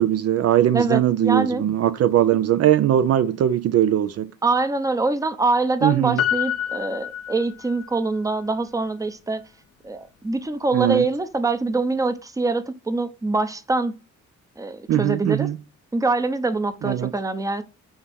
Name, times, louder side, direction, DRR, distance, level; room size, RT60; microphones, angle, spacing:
voice 1, 0.0-4.3 5.8-6.2 10.7-11.1 14.9-15.6 16.8-17.1, right 11 dB, 55° right, 0.5 m, -20 dB
voice 2, 0.7-1.6 4.4-9.4 9.8-13.9 14.6-15.5 15.9-17.6, right 3 dB, 10° right, 0.7 m, -24 dB
Piano, 6.2-8.0 8.3-8.4, left 11 dB, 55° left, 0.5 m, -27 dB
6.5 x 2.9 x 5.1 m
cardioid pair, 90°, 30 cm